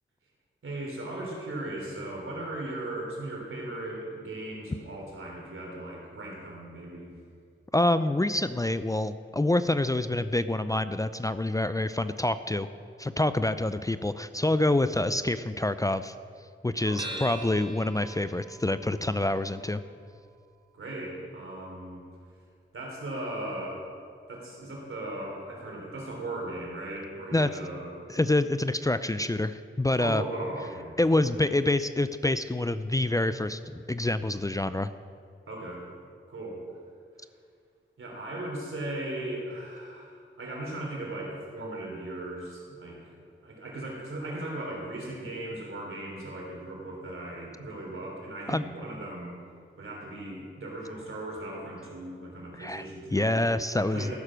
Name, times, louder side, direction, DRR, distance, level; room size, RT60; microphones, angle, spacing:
voice 1, 0.6-7.1 16.8-17.3 20.7-22.0 22.7-23.9 24.3-28.0 30.0-31.0 35.5-35.9 36.3-36.6 38.0-49.4 49.8-53.4 53.8-54.2, right 1 dB, 75° right, -2 dB, 3.5 m, -37 dB
voice 2, 7.7-12.7 13.0-16.1 16.6-19.8 27.3-27.5 28.1-30.2 31.0-34.9 48.5-48.6 52.6-54.1, left 2 dB, 15° left, 12 dB, 0.5 m, -27 dB
sound 1, 17.0-21.7, right 1 dB, 20° right, 1.9 m, -45 dB
14.5 x 6.7 x 6.2 m, 2.3 s
cardioid pair, 45°, 21 cm